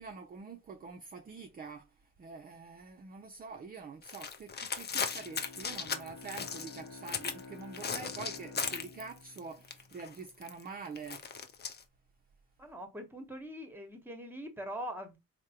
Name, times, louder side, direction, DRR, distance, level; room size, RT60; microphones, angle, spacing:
voice 1, 0.0-11.2, right 4 dB, 30° right, 0.4 m, -46 dB
sound 1, 4.0-7.4 7.7-9.4 9.6-11.8, left 6 dB, 35° left, 0.6 m, -37 dB
Bowed string instrument, 4.9-10.4, left 4 dB, 55° left, 1.1 m, -51 dB
voice 2, 12.6-15.2, equal, 5° right, 0.9 m, -42 dB
3.5 x 2.1 x 2.8 m
cardioid pair, 90°, 30 cm